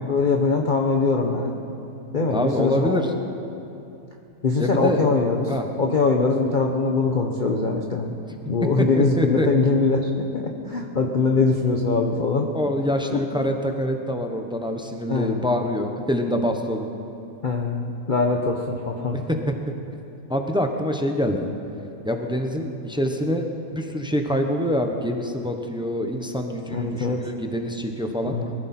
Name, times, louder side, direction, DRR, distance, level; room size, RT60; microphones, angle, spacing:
voice 1, 0.1-1.5 2.1-3.0 4.4-5.5 5.8-8.1 8.5-12.5 13.1-13.2 15.1-15.4 17.4-19.3 26.7-27.3 28.3-28.5, left 4 dB, 40° left, 1 dB, 0.8 m, -22 dB
voice 2, 2.3-3.1 4.6-5.0 5.5-5.6 8.3-8.4 9.0-9.5 12.5-16.9 19.1-19.7 20.3-21.5 22.0-23.4 23.7-28.4, equal, 5° right, 4 dB, 0.6 m, -25 dB
22.0 x 14.5 x 4.3 m, 2.7 s
omnidirectional pair, 1.8 m